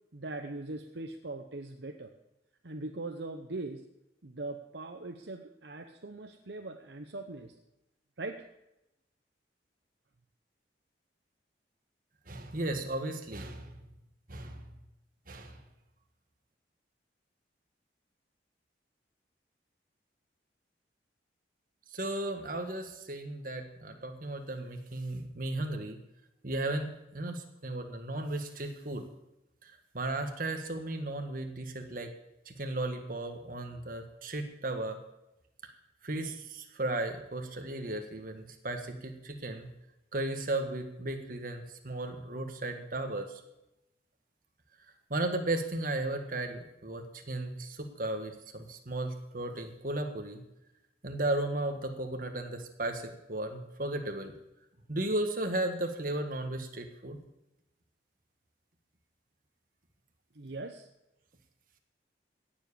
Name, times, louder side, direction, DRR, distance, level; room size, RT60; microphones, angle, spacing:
voice 1, 0.1-2.1 2.6-3.9 4.2-7.5 8.2-8.4 60.3-60.9, right 2 dB, 70° right, 5 dB, 0.9 m, -41 dB
voice 2, 12.3-13.8 14.3-14.6 15.3-15.6 21.9-26.0 26.4-29.1 29.6-32.1 32.4-35.0 36.0-39.7 40.1-43.4 45.1-50.4 51.0-54.3 54.9-57.2, right 2 dB, 50° right, 5 dB, 1.6 m, -35 dB
17.0 x 7.4 x 6.9 m, 0.91 s
head